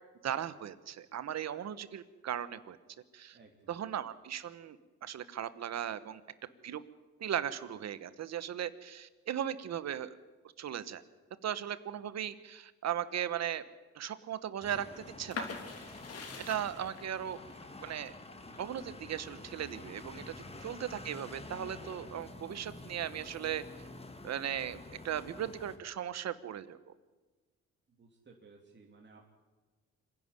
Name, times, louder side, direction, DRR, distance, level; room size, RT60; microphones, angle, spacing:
voice 1, 0.2-2.8 3.1-3.4 3.7-6.2 6.6-6.8 7.2-10.2 10.6-11.0 11.4-13.6 13.9-14.9 15.2-15.5 16.5-17.4 17.8-18.1 18.6-20.3 20.6-23.6 24.2-24.8 25.0-26.9, right 10 dB, 60° right, 15 dB, 1.2 m, -37 dB
voice 2, 3.3-3.7 20.3-20.7 27.9-29.2, right 4 dB, 35° right, 0 dB, 3.1 m, -59 dB
sound 1, 14.6-25.8, left 2 dB, 20° left, 2.0 m, -49 dB
sound 2, 15.3-20.9 21.4-22.2, left 4 dB, 55° left, 3.3 m, -45 dB
26.0 x 11.0 x 10.0 m, 1.3 s
cardioid pair, 90°, 30 cm